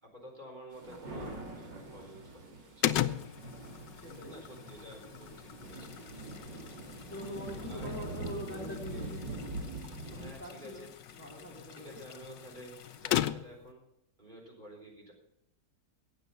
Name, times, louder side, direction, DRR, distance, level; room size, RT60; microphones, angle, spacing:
voice 1, 0.0-3.1 4.2-5.9 7.7-8.0 8.5-9.4 10.2-10.9 11.7-13.9 14.2-15.1, right 1 dB, 25° right, -1 dB, 4.2 m, -50 dB
sound 1, 0.7-10.3, right 2 dB, 85° right, 3.5 m, -44 dB
sound 2, 2.8-13.7, left 12 dB, 85° left, 1.3 m, -38 dB
voice 2, 4.0-4.3 7.1-9.2 10.1-10.9 11.1-12.0, left 1 dB, 5° left, -3 dB, 2.7 m, -43 dB
sound 3, 5.6-13.0, left 6 dB, 60° left, 1.9 m, -57 dB
15.5 x 9.1 x 5.6 m, 0.79 s
omnidirectional pair, 1.9 m